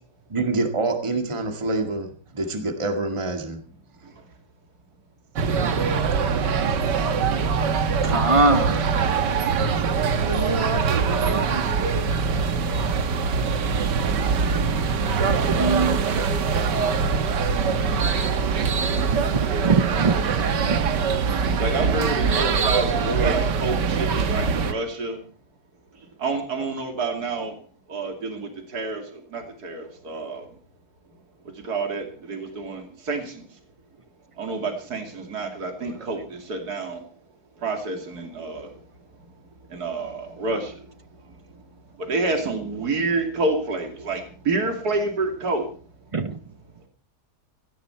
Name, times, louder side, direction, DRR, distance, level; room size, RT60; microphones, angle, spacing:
voice 1, 0.3-3.6, right 3 dB, 15° right, 1.9 m, -26 dB
sound 1, 5.4-24.7, right 5 dB, 90° right, 1.9 m, -23 dB
voice 2, 8.0-8.9 10.3-12.0 12.3-12.9 15.2-16.3 19.1-19.2 19.6-20.2 20.7-20.8 46.1-46.4, right 3 dB, 45° right, 0.4 m, -24 dB
voice 3, 21.6-25.2 26.2-27.6 27.9-30.4 31.6-33.4 34.4-37.0 37.6-38.7 39.7-40.7 42.0-45.6, right 3 dB, 65° right, 3.1 m, -28 dB
17.0 x 15.5 x 4.5 m
omnidirectional pair, 1.8 m